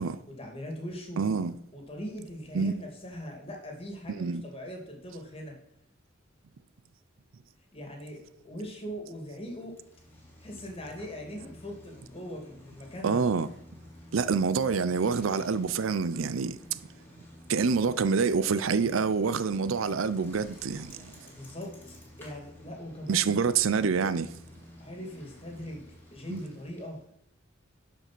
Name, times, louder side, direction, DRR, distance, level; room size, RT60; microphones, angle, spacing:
voice 1, 0.3-1.2 1.7-5.6 7.7-8.2 8.4-9.8 10.4-13.2 21.2-23.4 24.8-25.8 26.1-27.0, equal, 30° left, 2.3 m, -40 dB
voice 2, 1.2-1.5 2.5-2.7 4.1-4.4 13.0-13.5 14.1-16.8 17.5-21.2 23.1-24.3 26.3-26.4, right 5 dB, 90° right, 0.5 m, -27 dB
Bicycle, 9.6-27.1, equal, 10° left, 2.4 m, -52 dB
12.0 x 5.0 x 6.0 m
head